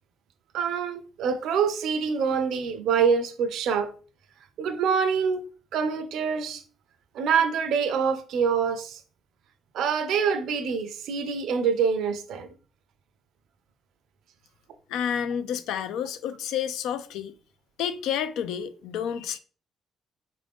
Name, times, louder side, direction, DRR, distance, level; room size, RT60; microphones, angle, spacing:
voice 1, 0.5-3.9 4.6-5.5 5.7-6.6 7.1-9.0 9.7-12.5, right 6 dB, 80° right, 0.5 m, -25 dB
voice 2, 14.9-17.3 17.8-19.4, left 8 dB, 85° left, 0.4 m, -30 dB
3.6 x 2.6 x 3.4 m
cardioid pair, 90°, 0 cm